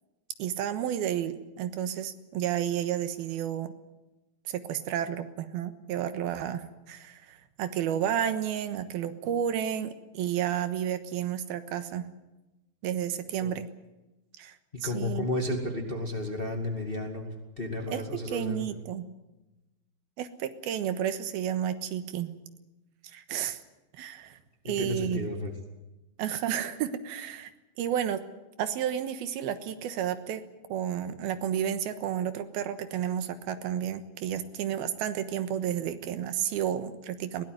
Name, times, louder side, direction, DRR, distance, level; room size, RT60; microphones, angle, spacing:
voice 1, 0.4-3.7 4.5-12.1 12.8-13.7 14.4-14.6 14.8-15.3 17.9-19.1 20.2-22.3 23.1-23.6 23.9-24.4 24.7-25.3 26.2-27.5 27.8-28.2 28.6-30.4 30.7-37.4, right 9 dB, 85° right, 11 dB, 3.1 m, -31 dB
voice 2, 14.8-18.8 24.6-25.5, left 2 dB, 20° left, 3 dB, 1.7 m, -33 dB
21.5 x 17.5 x 9.2 m, 1.0 s
omnidirectional pair, 4.3 m